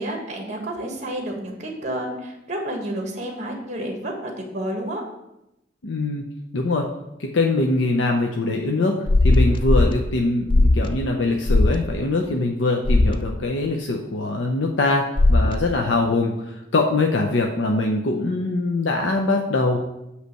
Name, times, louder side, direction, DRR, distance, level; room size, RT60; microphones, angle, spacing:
voice 1, 0.0-5.0, right 1 dB, 40° right, 1 dB, 1.5 m, -30 dB
voice 2, 5.8-6.2 6.5-6.9 7.2-9.0 9.2-19.8, left 2 dB, 85° left, 2 dB, 0.7 m, -23 dB
sound 1, 9.1-9.9 10.5-10.9 11.5-11.8 12.9-13.2 15.2-15.6, left 2 dB, 25° left, 0.3 m, -17 dB
8.1 x 3.3 x 6.4 m, 0.88 s
head